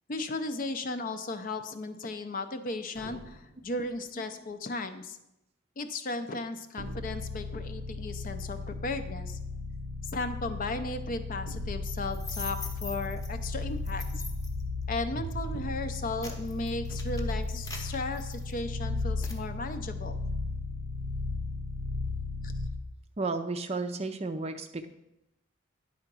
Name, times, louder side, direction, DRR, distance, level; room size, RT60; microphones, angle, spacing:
voice 1, 0.1-5.2 5.8-9.4 10.0-14.0 14.9-20.2 22.4-22.5, left 2 dB, 40° left, 9 dB, 0.5 m, -35 dB
sound 1, 2.9-4.8, equal, 90° left, 1.7 m, -51 dB
sound 2, 6.8-22.9, left 2 dB, 80° right, 0.6 m, -35 dB
sound 3, 12.1-13.3 13.8-14.6 15.2-15.5 15.9-18.8 19.2-19.4, left 3 dB, 15° left, 0.8 m, -43 dB
voice 2, 23.2-24.9, right 3 dB, 30° right, 8 dB, 0.4 m, -33 dB
10.0 x 3.8 x 6.0 m, 0.88 s
head